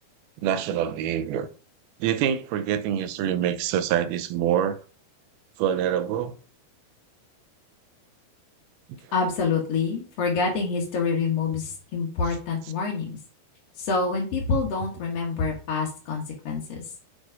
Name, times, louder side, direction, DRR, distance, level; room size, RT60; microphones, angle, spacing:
voice 1, 0.4-1.5 2.0-4.8 5.6-6.3, right 10 dB, 80° right, 2.5 m, -25 dB
voice 2, 9.1-13.2 13.8-16.8, left 4 dB, 50° left, 2.1 m, -27 dB
8.5 x 4.8 x 5.0 m
omnidirectional pair, 4.6 m